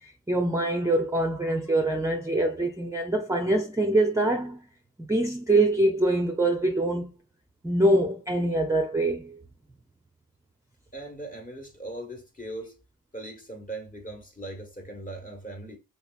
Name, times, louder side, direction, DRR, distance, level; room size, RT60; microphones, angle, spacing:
voice 1, 0.0-4.6 5.0-7.1 7.6-9.4, right 1 dB, 10° right, 0.5 m, -24 dB
voice 2, 10.9-12.7 13.1-15.8, right 2 dB, 25° left, 1.4 m, -39 dB
3.3 x 3.1 x 2.4 m
cardioid pair, 55°, 35 cm